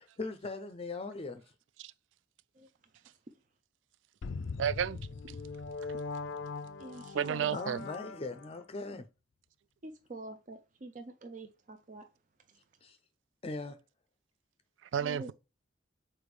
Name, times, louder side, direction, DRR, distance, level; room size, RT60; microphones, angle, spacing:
voice 1, 0.0-1.4 7.5-9.1 12.8-13.0 13.4-13.8, left 3 dB, 30° left, 0.5 m, -40 dB
sound 1, 4.2-8.6, left 4 dB, 85° left, 0.4 m, -41 dB
voice 2, 4.6-5.0 7.1-7.8 14.9-15.3, right 8 dB, 90° right, 0.3 m, -31 dB
voice 3, 6.8-7.8 9.8-12.0 15.0-15.3, right 2 dB, 45° right, 0.6 m, -46 dB
6.9 x 4.4 x 3.2 m
head